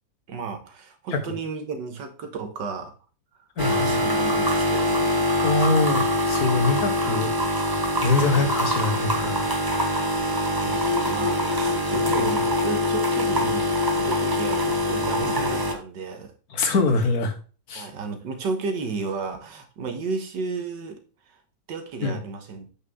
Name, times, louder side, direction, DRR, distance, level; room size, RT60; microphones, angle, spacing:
voice 1, 0.3-2.9 3.6-5.3 5.7-5.9 10.3-16.3 17.8-21.0 21.3-21.4 21.7-22.7, right 4 dB, 80° right, 6 dB, 2.0 m, -33 dB
voice 2, 3.6-4.0 5.4-9.5 16.5-17.3 17.7-17.9 22.0-22.2, left 3 dB, 60° left, 6 dB, 1.7 m, -24 dB
sound 1, 3.6-15.7, left 1 dB, 20° right, 0.7 m, -23 dB
8.4 x 6.0 x 3.6 m, 0.36 s
omnidirectional pair, 1.9 m